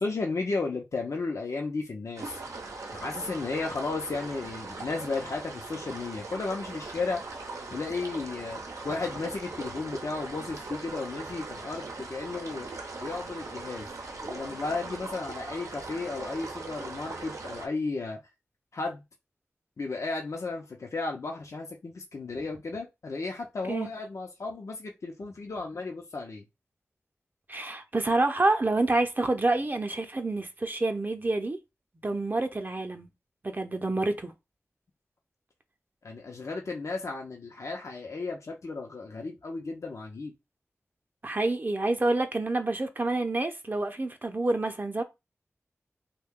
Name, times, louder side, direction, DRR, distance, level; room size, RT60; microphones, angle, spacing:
voice 1, 0.0-2.4 2.9-7.2 7.7-8.6 8.8-12.7 13.0-13.9 14.2-18.2 18.7-19.0 19.8-26.4 36.0-40.3, left 3 dB, 70° left, 0.6 m, -34 dB
sound 1, 2.2-17.7, right 3 dB, 80° right, 0.6 m, -40 dB
voice 2, 27.5-31.6 32.0-33.1 33.4-34.3 41.2-45.0, right 2 dB, 35° right, 0.6 m, -28 dB
2.6 x 2.2 x 3.6 m
cardioid pair, 45°, 5 cm